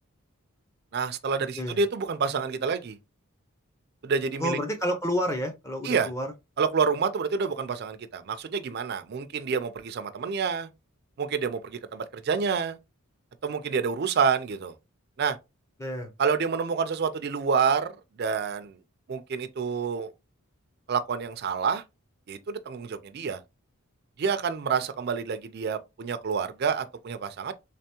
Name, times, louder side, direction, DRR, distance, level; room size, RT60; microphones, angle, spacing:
voice 1, 0.9-3.0 4.0-4.6 5.8-6.1 6.6-10.7 11.2-12.8 13.4-14.7 15.2-15.4 16.2-17.9 18.2-18.8 19.1-20.1 20.9-21.8 22.3-23.4 24.2-27.5, right 5 dB, 45° right, 0.4 m, -28 dB
voice 2, 4.4-6.3 15.8-16.1, equal, 15° left, 0.5 m, -29 dB
3.4 x 3.3 x 2.8 m
head